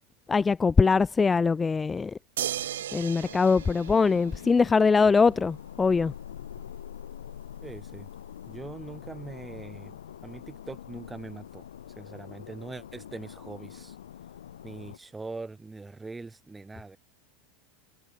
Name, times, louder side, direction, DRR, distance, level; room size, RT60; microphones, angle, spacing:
voice 1, 0.3-2.2 2.9-6.1, left 4 dB, 20° left, 0.5 m, -22 dB
sound 1, 2.4-4.8 6.6-6.7, right 11 dB, 80° right, 0.8 m, -36 dB
sound 2, 3.2-15.0, left 10 dB, 85° left, 1.0 m, -44 dB
voice 2, 7.6-8.1 8.5-11.6 12.0-14.0 14.6-17.0, right 3 dB, 15° right, 2.4 m, -42 dB
hypercardioid pair, 90°, 0 cm